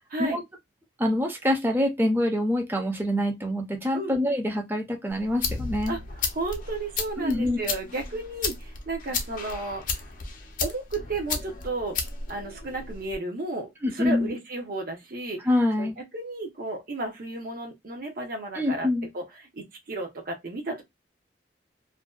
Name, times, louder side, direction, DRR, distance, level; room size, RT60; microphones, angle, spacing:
voice 1, 1.0-6.0 7.2-7.6 13.8-14.3 15.4-16.0 18.6-19.1, left 1 dB, 10° right, 0.5 m, -25 dB
sound 1, 5.1-13.2, left 4 dB, 50° left, 0.5 m, -34 dB
voice 2, 6.3-9.8 10.6-12.0 12.3-15.5 15.8-18.9 19.1-19.2 19.5-20.8, right 2 dB, 55° right, 0.7 m, -33 dB
2.5 x 2.1 x 2.3 m
head